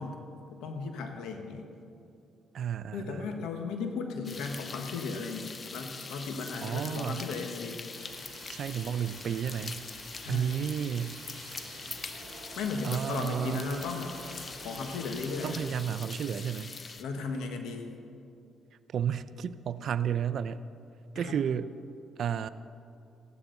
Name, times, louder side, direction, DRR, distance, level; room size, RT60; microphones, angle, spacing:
voice 1, 0.0-1.7 2.9-7.8 10.2-10.5 12.6-14.1 14.6-15.6 17.0-17.9 21.1-21.4, left 4 dB, 90° left, 4 dB, 1.4 m, -36 dB
voice 2, 2.5-3.3 6.6-7.3 8.5-9.8 10.3-11.7 12.8-13.6 15.4-16.7 18.9-20.6 21.1-21.7 22.2-22.5, right 8 dB, 65° right, 15 dB, 0.5 m, -32 dB
sound 1, 4.2-17.0, left 4 dB, 40° left, 0.8 m, -43 dB
sound 2, 7.9-15.8, right 5 dB, 80° right, 1.4 m, -50 dB
15.5 x 12.0 x 4.0 m, 2.5 s
cardioid pair, 90°, 0 cm